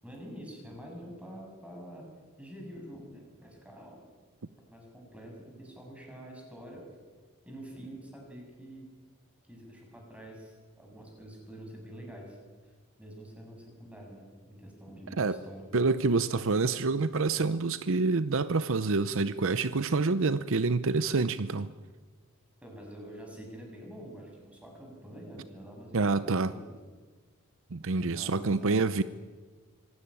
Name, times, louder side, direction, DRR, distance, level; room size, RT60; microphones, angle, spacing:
voice 1, 0.0-2.1 2.4-4.0 4.7-6.8 7.4-8.9 9.5-12.4 13.0-15.7 22.6-26.7 27.9-28.9, right 1 dB, 5° right, 7.1 m, -46 dB
voice 2, 15.7-21.7 25.9-26.5 27.7-29.0, right 3 dB, 65° right, 0.7 m, -27 dB
25.5 x 17.0 x 9.9 m
head